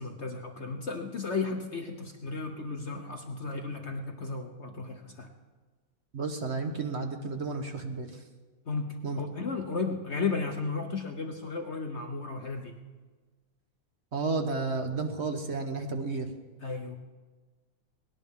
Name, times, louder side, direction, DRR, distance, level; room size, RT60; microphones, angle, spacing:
voice 1, 0.0-5.3 8.7-12.7 16.6-17.0, left 4 dB, 60° left, 4 dB, 0.7 m, -34 dB
voice 2, 6.1-8.2 9.0-9.2 14.1-16.3, right 3 dB, 40° right, 5 dB, 1.1 m, -32 dB
20.0 x 17.0 x 3.6 m, 1.3 s
omnidirectional pair, 2.3 m